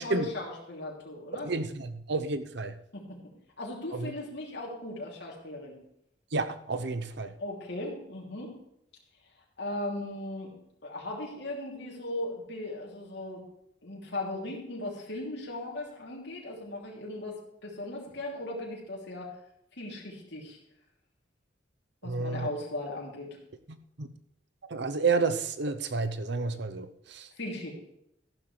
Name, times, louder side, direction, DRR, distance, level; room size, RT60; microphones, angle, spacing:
voice 1, 0.0-1.5 2.9-3.2 3.6-5.7 7.4-8.5 9.6-10.5 10.8-13.4 13.8-19.3 19.8-20.6 22.0-23.4 27.4-27.7, left 1 dB, 65° left, 3.1 m, -37 dB
voice 2, 1.4-2.8 3.9-4.1 6.3-7.3 22.0-22.5 23.7-24.1 24.7-27.3, right 4 dB, 65° right, 0.8 m, -31 dB
13.5 x 12.0 x 3.4 m
head